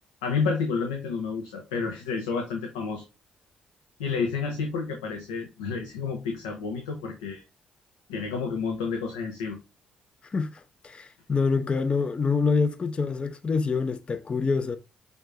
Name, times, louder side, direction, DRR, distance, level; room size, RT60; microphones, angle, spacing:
voice 1, 0.2-3.0 4.0-7.4 8.1-9.6, left 5 dB, 85° left, 0.6 m, -30 dB
voice 2, 10.3-14.8, left 4 dB, 35° left, 0.6 m, -26 dB
6.1 x 3.5 x 2.5 m
hypercardioid pair, 40°, 3 cm